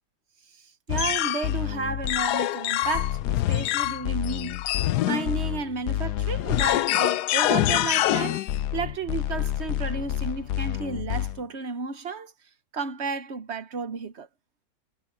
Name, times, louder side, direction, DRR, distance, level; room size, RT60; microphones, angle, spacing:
sound 1, 0.9-11.4, left 13 dB, 80° left, 1.2 m, -26 dB
voice 1, 0.9-4.6 5.0-8.4 8.7-12.3 12.7-14.3, right 4 dB, 50° right, 1.1 m, -32 dB
omnidirectional pair, 1.7 m